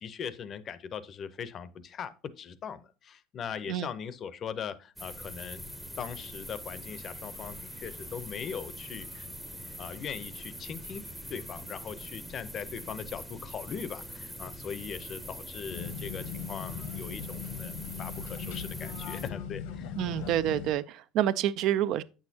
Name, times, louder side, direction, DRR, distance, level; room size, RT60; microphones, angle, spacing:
voice 1, 0.0-5.6 6.0-9.3 9.8-11.0 11.3-17.7 18.0-20.3, left 7 dB, 35° left, 0.6 m, -40 dB
sound 1, 5.0-19.3, equal, ahead, 0.7 m, -43 dB
sound 2, 15.7-20.7, left 7 dB, 90° left, 1.1 m, -39 dB
voice 2, 20.0-22.0, right 12 dB, 60° right, 0.4 m, -28 dB
8.5 x 6.3 x 2.7 m
cardioid pair, 135°, 0 cm